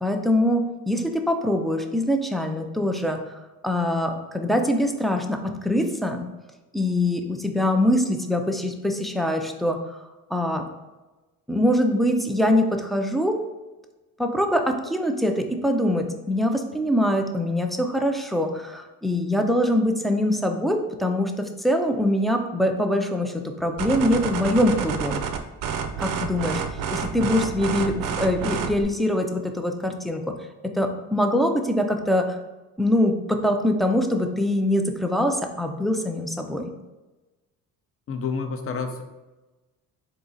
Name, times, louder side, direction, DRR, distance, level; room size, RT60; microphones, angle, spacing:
voice 1, 0.0-3.4 3.6-6.2 6.7-10.0 10.3-10.6 11.5-13.4 14.2-25.2 26.0-26.6 26.9-30.2 30.6-32.4 32.8-36.7, left 1 dB, ahead, 3 dB, 0.3 m, -23 dB
sound 1, 23.8-28.8, right 6 dB, 65° right, 0.5 m, -29 dB
voice 2, 38.1-39.0, left 5 dB, 40° left, 6 dB, 0.6 m, -29 dB
3.7 x 2.9 x 3.9 m, 1.1 s
cardioid pair, 100°, 35 cm